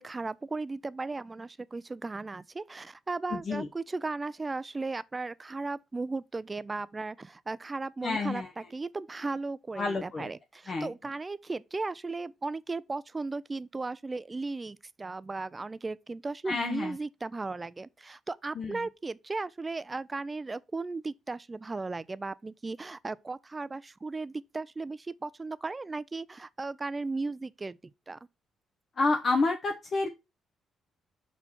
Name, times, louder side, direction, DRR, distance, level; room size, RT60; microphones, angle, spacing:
voice 1, 0.0-27.8 28.1-28.2, right 3 dB, 25° right, 0.4 m, -36 dB
voice 2, 3.3-3.7 8.0-8.5 9.8-10.3 10.7-10.9 16.5-17.0 18.5-18.8 29.0-30.1, left 3 dB, 45° left, 0.9 m, -29 dB
5.6 x 4.3 x 4.4 m
cardioid pair, 90°, 0 cm